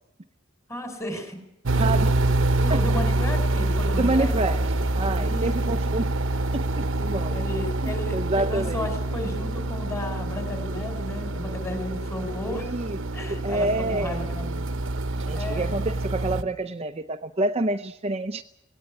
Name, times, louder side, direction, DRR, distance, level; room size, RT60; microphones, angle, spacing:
voice 1, 0.7-1.4 1.7-2.0 2.6-4.3 5.1-5.8 7.3-12.7 13.1-14.7 15.3-15.8, left 1 dB, 15° left, 6 dB, 4.6 m, -34 dB
sound 1, 1.6-16.4, right 2 dB, 65° right, 1.0 m, -26 dB
voice 2, 1.8-2.1 2.7-2.8 4.0-4.6 4.9-6.1 6.5-7.4 7.8-8.9 12.5-13.0 13.3-14.3 15.2-18.4, right 2 dB, 30° right, 7 dB, 0.7 m, -28 dB
18.5 x 18.5 x 8.4 m, 0.86 s
head